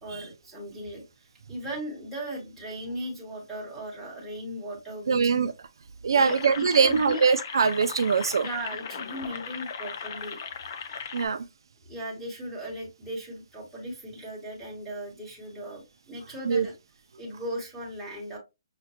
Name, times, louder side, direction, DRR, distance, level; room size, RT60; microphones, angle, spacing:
voice 1, 0.0-5.4 6.1-7.2 8.4-10.4 11.9-16.7 17.2-18.4, right 1 dB, ahead, 1.0 m, -37 dB
voice 2, 5.1-5.5 6.0-8.5 11.1-11.4 16.5-16.7, right 5 dB, 60° right, 0.3 m, -22 dB
sound 1, 6.2-11.3, left 6 dB, 35° left, 0.4 m, -38 dB
5.7 x 2.2 x 2.7 m
hypercardioid pair, 175°, 3 cm